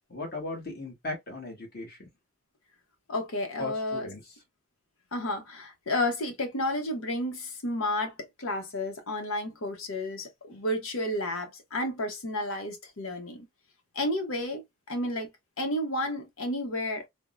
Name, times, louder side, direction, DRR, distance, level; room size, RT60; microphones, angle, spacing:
voice 1, 0.1-2.0 3.6-4.3, left 2 dB, 45° left, 1.1 m, -37 dB
voice 2, 3.1-4.1 5.1-13.4 13.9-15.3 15.6-17.0, left 1 dB, 75° left, 0.8 m, -31 dB
3.5 x 2.0 x 2.4 m
head